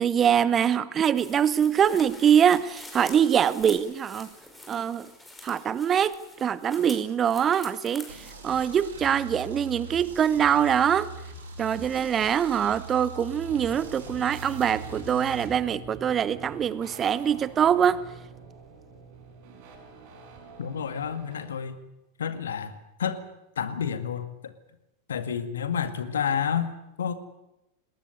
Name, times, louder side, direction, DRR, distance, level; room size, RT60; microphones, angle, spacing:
voice 1, 0.0-4.3 4.7-5.1 5.4-8.2 8.4-11.1 11.6-18.0, right 8 dB, 25° right, 18 dB, 0.9 m, -23 dB
sound 1, 1.2-8.4, left 1 dB, 5° left, 5.4 m, -46 dB
sound 2, 8.1-15.5, right 3 dB, 60° right, 7.1 m, -42 dB
sound 3, 13.4-21.5, right 3 dB, 45° right, 5.5 m, -46 dB
voice 2, 20.6-21.8 22.2-22.7 23.0-23.2 23.6-24.5 25.1-27.1, left 7 dB, 65° left, 11 dB, 2.0 m, -30 dB
20.5 x 18.5 x 9.7 m, 0.94 s
figure-of-eight pair, 90°, 0 cm